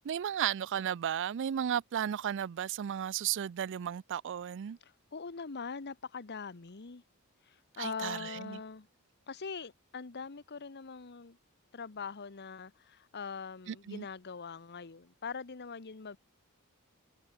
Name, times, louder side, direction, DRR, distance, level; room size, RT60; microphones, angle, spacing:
voice 1, 0.0-4.8 7.8-8.6 13.7-14.1, right 9 dB, 60° right, 0.4 m, -34 dB
voice 2, 4.8-7.0 7.5-8.9 9.3-11.4 11.7-16.2, left 5 dB, 50° left, 1.0 m, -42 dB
head